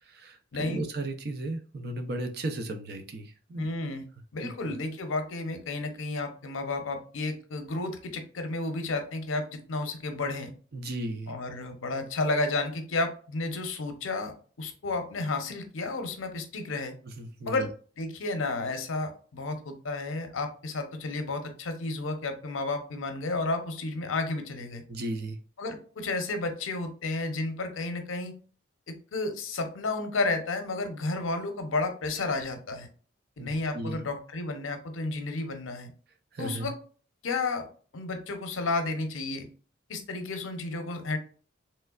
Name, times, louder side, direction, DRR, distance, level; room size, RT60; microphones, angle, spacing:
voice 1, 0.0-3.8 4.4-4.5 10.7-11.4 17.0-17.7 24.9-25.4 33.4-34.0 36.3-36.7, right 2 dB, 50° right, 6 dB, 0.5 m, -35 dB
voice 2, 0.5-0.8 3.6-4.1 4.3-10.5 11.3-16.9 17.4-17.7 18.0-24.8 25.6-28.3 28.9-32.9 33.4-35.9 36.4-36.7 37.2-37.7 37.9-39.5 39.9-41.2, left 3 dB, 80° left, 7 dB, 0.7 m, -32 dB
3.2 x 3.2 x 2.3 m, 0.40 s
head